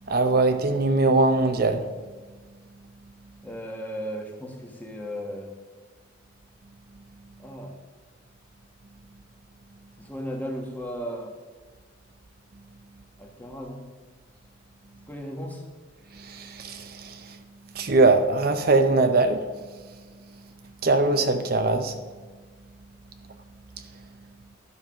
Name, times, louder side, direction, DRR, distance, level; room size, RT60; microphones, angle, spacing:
voice 1, 0.0-1.9 16.1-17.4 17.7-20.5 20.8-22.0 23.3-23.4 23.8-24.1, right 3 dB, 50° right, 0.6 m, -23 dB
voice 2, 3.4-5.5 7.4-7.8 10.0-11.4 13.2-13.9 15.1-15.6, equal, 10° left, 1.2 m, -35 dB
11.5 x 5.4 x 6.1 m
head